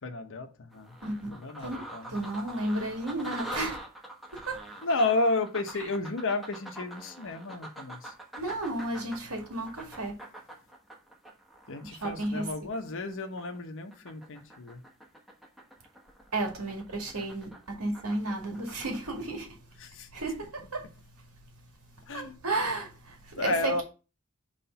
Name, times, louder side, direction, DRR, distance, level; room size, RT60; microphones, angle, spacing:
voice 1, 0.0-1.0 1.3-2.1 4.8-8.1 11.7-14.8 19.8-20.1 22.1-22.4 23.4-23.8, left 2 dB, 60° left, 0.9 m, -32 dB
sound 1, 0.7-13.6 13.9-19.1, right 1 dB, ahead, 1.0 m, -45 dB
voice 2, 2.1-3.8 4.3-4.6 8.4-10.1 12.0-12.5 16.3-17.5 17.8-19.6 20.1-20.9 22.1-23.8, right 2 dB, 80° right, 2.0 m, -33 dB
5.7 x 3.3 x 5.4 m
head